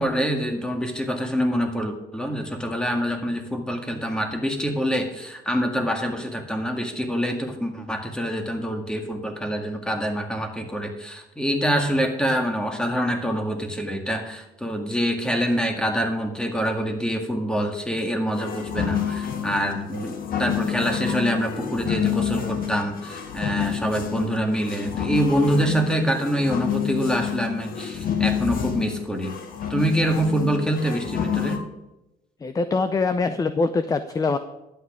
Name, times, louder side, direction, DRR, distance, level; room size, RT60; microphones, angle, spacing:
voice 1, 0.0-29.3 29.7-31.6, equal, 5° left, 4 dB, 1.9 m, -25 dB
sound 1, 18.3-31.6, left 8 dB, 60° left, 1.8 m, -28 dB
voice 2, 32.4-34.4, left 4 dB, 20° left, 11 dB, 0.6 m, -24 dB
11.5 x 8.6 x 5.0 m, 0.93 s
cardioid pair, 110°, 17 cm